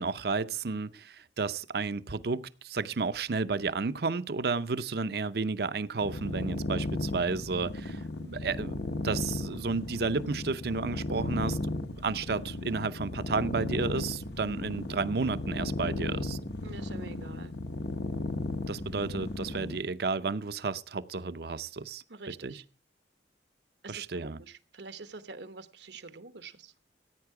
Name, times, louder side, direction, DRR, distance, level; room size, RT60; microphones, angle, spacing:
voice 1, 0.0-8.8 9.0-11.6 12.0-16.4 18.7-22.6 23.9-24.4, right 4 dB, 60° right, 14 dB, 0.6 m, -32 dB
sound 1, 6.0-19.8, left 2 dB, 70° left, 1.2 m, -35 dB
voice 2, 16.6-17.5 22.1-22.6 23.8-26.7, right 4 dB, 80° right, 11 dB, 1.1 m, -46 dB
15.5 x 9.1 x 4.8 m, 0.37 s
head